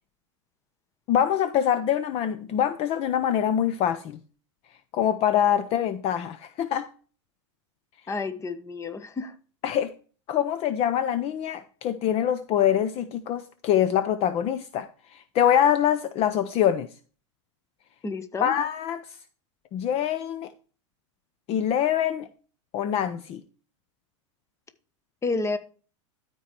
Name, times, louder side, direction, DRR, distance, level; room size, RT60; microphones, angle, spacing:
voice 1, 1.1-4.2 4.9-6.9 9.6-9.9 10.3-16.9 18.4-19.0 19.7-20.5 21.5-22.3 22.7-23.4, left 10 dB, 40° left, 0.7 m, -24 dB
voice 2, 8.1-9.4 18.0-18.5 25.2-25.6, left 3 dB, 20° left, 1.1 m, -30 dB
13.0 x 4.6 x 4.5 m
hypercardioid pair, 120°, 16 cm